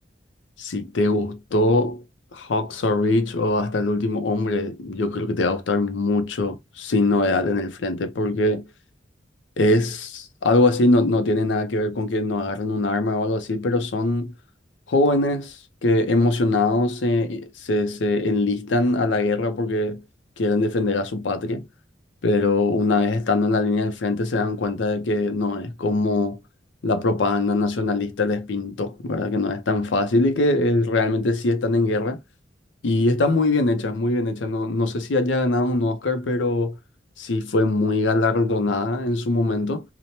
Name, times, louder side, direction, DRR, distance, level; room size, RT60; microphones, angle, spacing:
voice 1, 0.6-2.0 2.3-8.6 9.6-14.3 14.9-15.6 15.8-20.0 20.4-21.6 22.2-26.4 26.8-32.2 32.8-36.7 37.2-39.8, left 2 dB, 85° left, 0.6 m, -22 dB
2.9 x 2.1 x 2.8 m
head